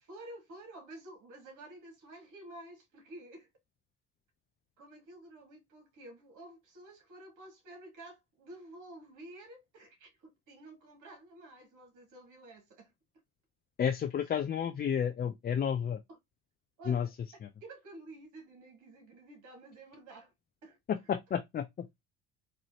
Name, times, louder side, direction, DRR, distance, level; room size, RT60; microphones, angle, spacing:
voice 1, 0.1-3.5 4.8-12.9 16.8-17.1 17.6-20.3 20.6-20.8, right 1 dB, 60° right, 2.0 m, -51 dB
voice 2, 13.8-16.0 16.9-17.1 17.4-17.5 20.9-21.9, left 8 dB, 30° left, 0.4 m, -31 dB
4.2 x 2.6 x 2.7 m
hypercardioid pair, 65°, 34 cm